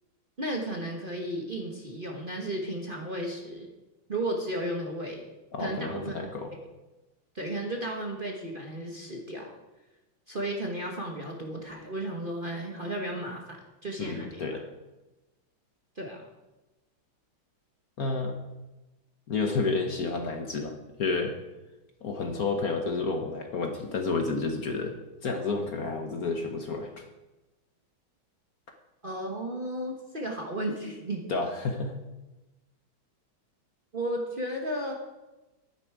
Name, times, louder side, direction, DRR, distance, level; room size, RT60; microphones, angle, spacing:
voice 1, 0.4-3.7 4.1-5.2 5.6-6.2 7.3-9.5 10.3-14.6 15.9-16.2 29.0-31.2 33.9-34.9, right 1 dB, 30° right, 0 dB, 1.1 m, -34 dB
voice 2, 5.5-6.5 14.0-14.6 18.0-18.3 19.3-21.3 22.0-25.0 25.2-27.0 31.3-32.0, left 3 dB, 55° left, 4 dB, 1.3 m, -30 dB
12.0 x 10.0 x 4.7 m, 1.1 s
omnidirectional pair, 2.2 m